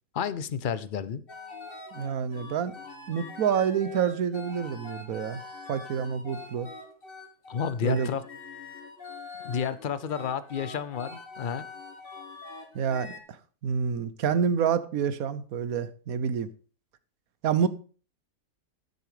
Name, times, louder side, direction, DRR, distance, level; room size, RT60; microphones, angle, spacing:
voice 1, 0.1-1.2 7.5-8.2 9.4-11.6, left 7 dB, 65° left, 0.5 m, -31 dB
sound 1, 1.3-13.2, left 3 dB, 35° left, 1.8 m, -44 dB
voice 2, 1.9-2.7 3.1-5.4 5.7-6.7 7.8-8.1 12.7-13.4 13.6-16.5 17.4-17.7, right 7 dB, 65° right, 1.2 m, -28 dB
12.0 x 6.7 x 4.9 m
omnidirectional pair, 1.7 m